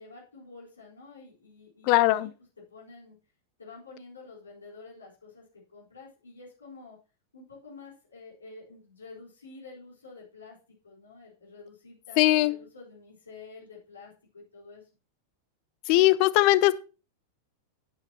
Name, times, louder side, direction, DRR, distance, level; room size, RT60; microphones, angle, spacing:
voice 1, 0.0-2.3 2.7-3.2 3.6-5.4 5.7-7.0 7.3-10.6 10.8-14.9, left 4 dB, 75° left, -5 dB, 4.1 m, -49 dB
voice 2, 1.9-2.3 12.2-12.6 15.9-16.7, left 17 dB, 45° left, 17 dB, 0.6 m, -20 dB
11.5 x 9.1 x 2.9 m, 0.32 s
figure-of-eight pair, 90°, 0 cm